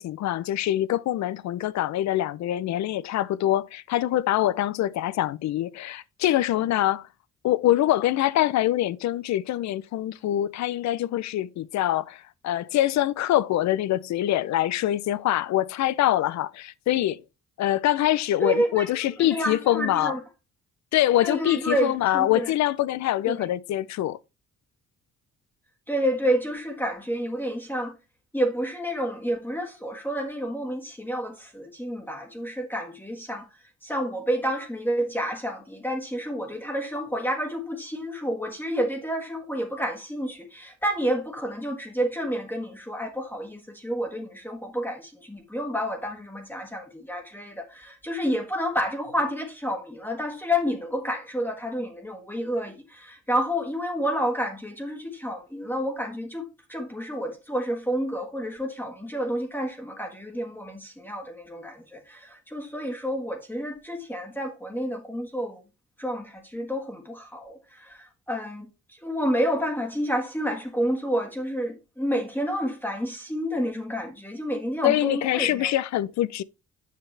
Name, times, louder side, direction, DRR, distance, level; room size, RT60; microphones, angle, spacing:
voice 1, 0.0-7.1 7.4-17.2 17.6-20.1 20.9-24.2 74.8-76.4, left 13 dB, 65° left, 0.5 m, -24 dB
voice 2, 18.4-18.9 19.2-20.2 21.2-22.5 23.2-23.5 25.9-28.0 28.3-33.5 33.8-65.6 66.0-75.7, equal, 5° left, 1.4 m, -29 dB
7.4 x 5.8 x 3.2 m
cardioid pair, 90°, 30 cm